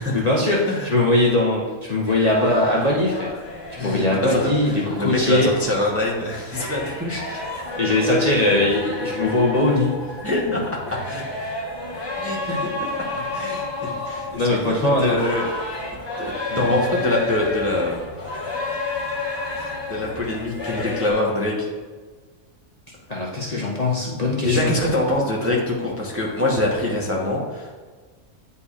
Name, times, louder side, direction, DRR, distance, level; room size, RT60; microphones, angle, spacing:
voice 1, 0.1-3.3 3.8-5.6 7.8-10.1 10.5-10.6 12.4-12.7 13.2-13.3 14.4-15.2 16.5-16.7 23.1-24.7, left 2 dB, 35° left, -4 dB, 0.7 m, -21 dB
sound 1, 2.1-21.1, left 2 dB, 20° left, 1.2 m, -31 dB
voice 2, 3.8-7.4 10.2-11.2 12.2-12.9 13.3-14.4 15.0-15.5 16.2-18.4 19.6-21.7 24.4-27.7, left 1 dB, 15° right, -4 dB, 0.7 m, -24 dB
9.6 x 4.2 x 2.4 m, 1.4 s
omnidirectional pair, 1.4 m